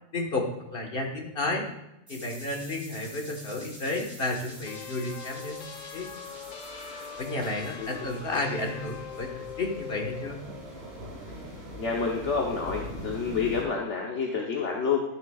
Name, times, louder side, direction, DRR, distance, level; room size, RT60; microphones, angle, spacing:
voice 1, 0.1-1.6 2.1-6.1 7.2-10.4, left 2 dB, 45° left, 1 dB, 1.6 m, -32 dB
sound 1, 2.1-9.8, equal, 15° right, 3.9 m, -48 dB
sound 2, 4.7-10.4, left 8 dB, 80° left, 0.4 m, -42 dB
sound 3, 4.7-13.6, equal, 50° right, 3.2 m, -43 dB
voice 2, 7.8-8.1 11.8-15.0, left 5 dB, 65° left, -1 dB, 1.3 m, -29 dB
11.5 x 10.5 x 2.4 m, 0.87 s
omnidirectional pair, 1.4 m